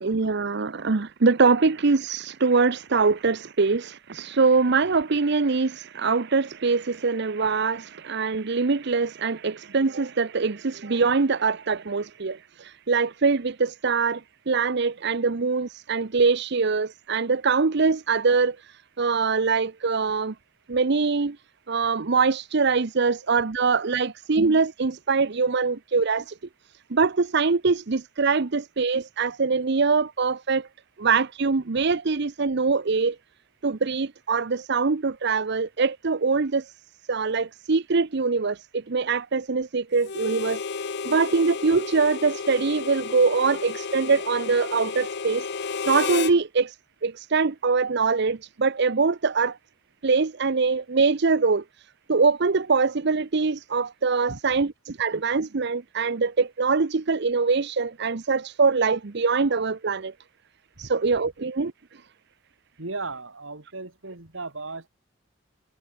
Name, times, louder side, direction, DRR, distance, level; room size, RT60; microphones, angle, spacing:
voice 1, 0.0-14.2 14.5-18.6 19.0-20.3 20.7-21.4 21.7-26.3 26.9-30.7 31.0-33.2 33.6-36.7 37.1-40.6 41.0-45.5 45.8-46.7 47.0-49.6 50.0-51.6 52.1-60.1 60.8-61.7, right 4 dB, 60° right, 0.8 m, -23 dB
Harmonica, 40.0-46.4, left 5 dB, 60° left, 0.7 m, -32 dB
voice 2, 62.8-64.9, right 3 dB, 90° right, 3.5 m, -36 dB
head